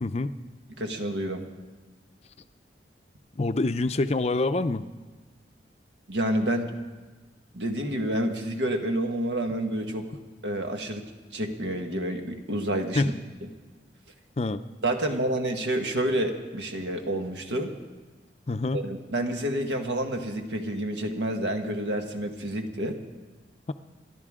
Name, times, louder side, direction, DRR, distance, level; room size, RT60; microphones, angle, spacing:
voice 1, 0.0-0.3 3.3-4.8 13.0-13.1 14.4-14.6 18.5-18.8, left 2 dB, 35° left, 11 dB, 0.5 m, -26 dB
voice 2, 0.8-1.4 6.1-6.7 7.5-10.1 10.4-11.0 11.3-13.0 14.8-17.7 18.7-23.0, right 1 dB, 85° right, 4 dB, 1.6 m, -29 dB
29.0 x 12.5 x 3.7 m, 1.3 s
head